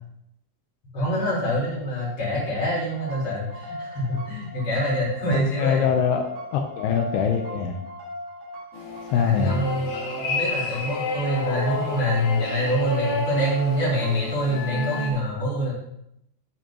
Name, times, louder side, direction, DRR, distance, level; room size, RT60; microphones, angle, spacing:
voice 1, 0.9-5.9 9.1-15.7, equal, 30° left, -6 dB, 4.5 m, -25 dB
sound 1, 2.9-14.4, left 1 dB, 60° right, 3.4 m, -39 dB
voice 2, 5.3-6.2 6.5-7.8 9.1-9.6, left 7 dB, 85° left, 3 dB, 2.7 m, -23 dB
sound 2, 8.7-15.1, left 2 dB, 65° left, 3.3 m, -30 dB
10.5 x 9.2 x 2.9 m, 0.77 s
omnidirectional pair, 4.7 m